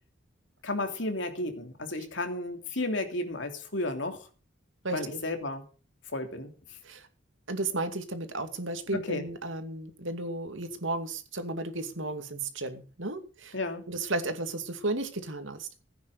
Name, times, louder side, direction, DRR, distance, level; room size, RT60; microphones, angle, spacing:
voice 1, 0.6-4.2 4.9-5.6 6.1-6.5 9.0-9.2 13.5-13.8, left 2 dB, 65° left, 5 dB, 3.1 m, -33 dB
voice 2, 4.8-5.2 6.8-7.1 7.5-13.6 13.9-15.8, right 2 dB, 75° right, 7 dB, 2.6 m, -34 dB
16.0 x 9.4 x 6.7 m, 0.38 s
head